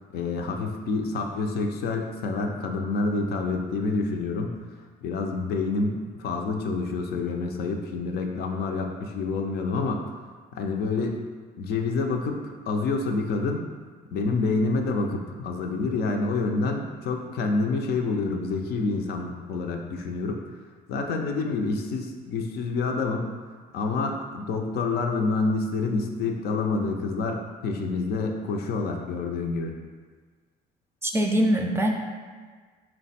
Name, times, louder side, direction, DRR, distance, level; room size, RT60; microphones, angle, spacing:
voice 1, 0.1-4.5 5.0-10.0 10.5-11.2 11.6-13.6 14.1-20.4 20.9-23.3 23.7-29.7, left 3 dB, 70° left, 3 dB, 0.5 m, -27 dB
voice 2, 31.0-31.9, equal, 15° right, 2 dB, 0.4 m, -22 dB
4.5 x 2.2 x 4.1 m, 1.5 s
cardioid pair, 110°, 17 cm